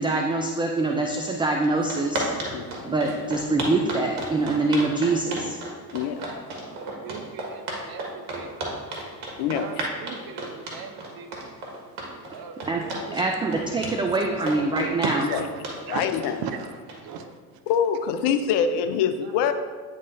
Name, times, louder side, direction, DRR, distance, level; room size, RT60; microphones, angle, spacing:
voice 1, 0.0-2.3 2.8-5.6 12.7-12.8 13.1-15.3, right 2 dB, 10° right, 2 dB, 0.3 m, -24 dB
sound 1, 1.3-1.4 1.6-17.2, right 2 dB, 70° right, 1.7 m, -33 dB
voice 2, 2.5-2.9 5.9-6.3 6.7-6.8 9.4-9.9 15.3-15.4 15.9-16.4 17.7-19.5, left 7 dB, 60° left, 9 dB, 0.7 m, -25 dB
voice 3, 6.6-8.9 9.3-13.2 13.8-14.4 15.0-15.4 15.9-16.1 16.4-17.6 19.2-19.4, right 6 dB, 50° right, 8 dB, 0.7 m, -38 dB
9.3 x 3.8 x 2.7 m, 1.5 s
hypercardioid pair, 70°, 48 cm